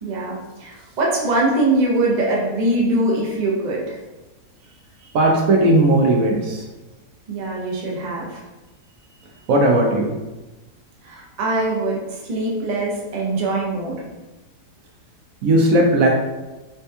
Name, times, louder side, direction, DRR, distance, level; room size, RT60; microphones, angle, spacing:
voice 1, 0.0-4.0 7.3-8.4 11.0-14.0, right 2 dB, 50° right, -3 dB, 0.5 m, -22 dB
voice 2, 5.1-6.6 9.5-10.2 15.4-16.1, right 1 dB, 70° right, -1 dB, 0.9 m, -16 dB
4.3 x 2.2 x 2.7 m, 1.1 s
omnidirectional pair, 1.7 m